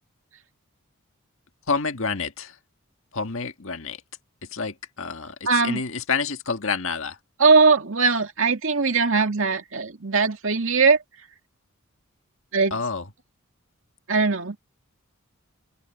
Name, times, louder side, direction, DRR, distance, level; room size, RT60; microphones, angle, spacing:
voice 1, 1.7-2.6 3.1-4.0 4.5-7.2 12.7-13.1, left 4 dB, 65° left, 1.6 m, -28 dB
voice 2, 5.5-5.8 7.4-11.0 12.5-12.7 14.1-14.6, right 4 dB, 65° right, 2.2 m, -20 dB
open air
head